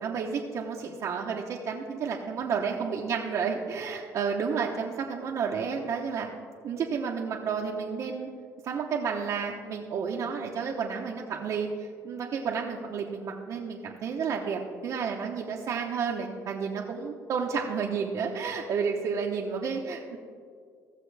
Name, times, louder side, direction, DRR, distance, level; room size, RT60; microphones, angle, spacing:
voice 1, 0.0-6.3 6.6-8.3 8.6-20.2, right 6 dB, 60° right, -3 dB, 1.0 m, -31 dB
17.5 x 6.7 x 3.4 m, 2.1 s
cardioid pair, 100°, 6 cm